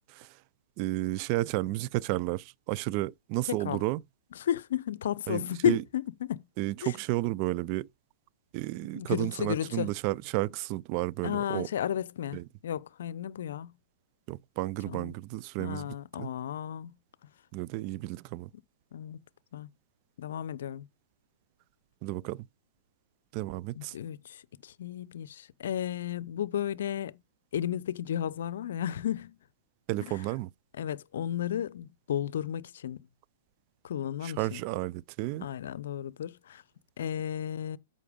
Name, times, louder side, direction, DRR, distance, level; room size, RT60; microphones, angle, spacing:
voice 1, 0.8-4.0 5.3-5.8 6.6-7.9 8.5-11.7 12.3-12.5 14.3-16.3 17.5-18.5 22.0-22.5 23.3-23.9 29.9-30.5 34.2-35.5, right 18 dB, 45° right, 0.4 m, -32 dB
voice 2, 3.5-3.8 4.4-6.4 6.8-6.9 8.9-9.9 11.2-13.7 14.9-15.1 15.6-16.9 18.9-19.2 19.5-19.7 20.2-20.9 23.7-27.1 27.5-29.4 30.1-30.2 30.8-33.1 33.8-34.6 35.4-36.6 37.0-37.8, left 10 dB, 70° left, 0.6 m, -33 dB
8.4 x 5.5 x 5.2 m
hypercardioid pair, 125°, 0 cm